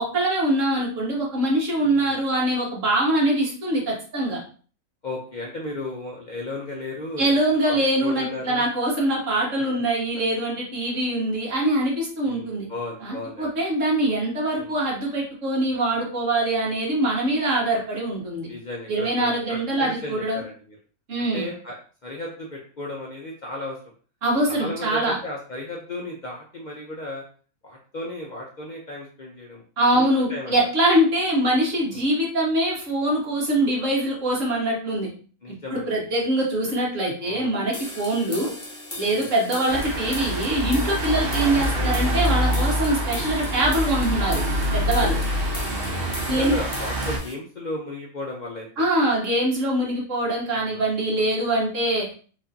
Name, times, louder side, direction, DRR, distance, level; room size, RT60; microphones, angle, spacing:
voice 1, 0.0-4.4 7.2-12.7 13.0-18.5 18.9-20.4 21.1-21.5 24.2-25.2 29.8-35.1 35.7-38.5 39.0-44.4 44.7-45.2 46.3-46.6 48.8-52.1, right 1 dB, 70° right, -3 dB, 1.6 m, -23 dB
voice 2, 1.8-2.2 5.0-7.4 7.7-8.7 12.2-13.5 14.5-14.7 18.5-20.8 21.3-23.8 24.5-27.2 27.6-29.6 29.9-30.7 31.9-32.0 35.4-36.1 37.2-37.6 39.1-39.3 41.7-42.0 44.8-45.2 45.9-48.9 50.5-50.8, left 2 dB, 50° left, -1 dB, 0.6 m, -35 dB
sound 1, 37.7-47.3, left 1 dB, 20° left, 0.8 m, -37 dB
sound 2, 39.7-47.2, equal, 50° right, 1.1 m, -25 dB
4.5 x 2.6 x 2.6 m, 0.41 s
omnidirectional pair, 1.4 m